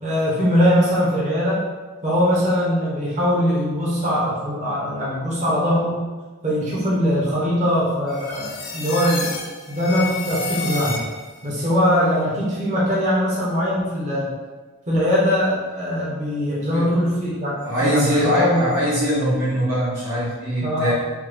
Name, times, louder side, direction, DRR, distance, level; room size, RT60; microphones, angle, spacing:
voice 1, 0.0-1.6 2.0-6.0 6.4-9.3 9.7-11.0 11.4-14.3 14.9-18.7 20.6-20.9, equal, 30° right, -7 dB, 0.7 m, -21 dB
sound 1, 8.1-11.4, left 3 dB, 40° left, 0.3 m, -30 dB
voice 2, 17.6-20.9, equal, 80° right, -9 dB, 1.4 m, -22 dB
3.2 x 2.2 x 3.3 m, 1.3 s
head